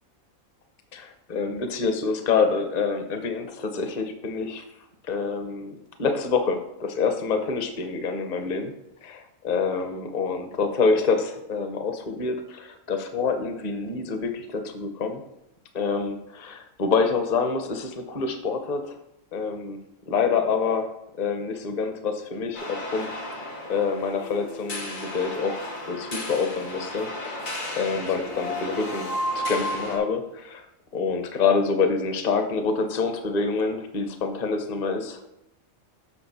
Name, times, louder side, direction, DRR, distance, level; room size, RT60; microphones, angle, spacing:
voice 1, 0.9-4.6 5.1-8.7 9.0-15.2 15.7-19.0 19.3-19.8 20.1-20.9 21.2-23.1 23.7-25.6 25.9-27.5 27.8-29.1 29.3-30.7 30.9-35.2, left 4 dB, 40° left, 7 dB, 0.8 m, -26 dB
sound 1, 22.5-30.0, left 1 dB, 70° left, 1.9 m, -33 dB
7.1 x 6.2 x 4.2 m, 0.83 s
omnidirectional pair, 1.4 m